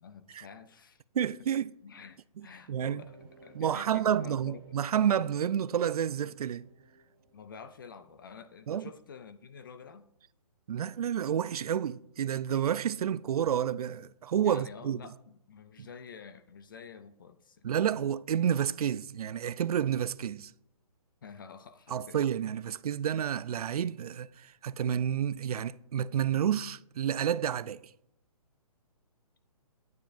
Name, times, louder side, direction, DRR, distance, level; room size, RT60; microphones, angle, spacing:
voice 1, 0.0-1.0 1.8-4.6 7.3-10.1 14.4-17.6 21.2-22.2, left 6 dB, 35° left, 0.4 m, -49 dB
voice 2, 1.1-1.8 2.4-3.0 3.5-6.7 8.7-8.8 10.7-15.0 15.8-15.9 17.6-20.5 21.9-27.9, right 9 dB, 75° right, 0.4 m, -30 dB
sound 1, 3.0-8.5, right 3 dB, 40° right, 1.1 m, -59 dB
9.4 x 9.3 x 2.5 m
hypercardioid pair, 165°, 19 cm